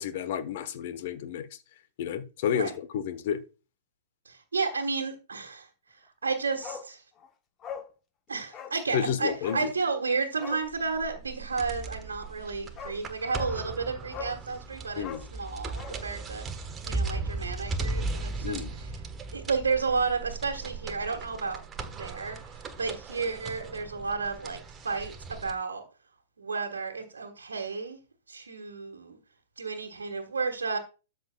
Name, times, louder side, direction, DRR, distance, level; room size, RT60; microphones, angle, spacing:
voice 1, 0.0-1.5 2.0-3.4 8.9-9.7 15.0-15.2 18.4-18.7, left 8 dB, 55° left, 1.1 m, -31 dB
voice 2, 4.2-7.0 8.3-16.4 16.8-19.0 19.3-21.6 21.9-25.8 26.4-28.0 28.3-29.2 29.6-30.8, right 4 dB, 75° right, 1.6 m, -32 dB
Bark, 6.6-6.9 7.2-7.3 7.6-7.9 8.5-8.8 9.4-9.7 10.3-10.7 12.3-12.4 12.8-13.0 13.3-13.6 14.1-14.4 15.0-16.0 16.3-16.4, left 7 dB, 25° left, 1.1 m, -40 dB
sound 1, 10.7-25.5, right 3 dB, 20° right, 1.3 m, -37 dB
13.0 x 6.6 x 2.3 m
figure-of-eight pair, 105°, 0 cm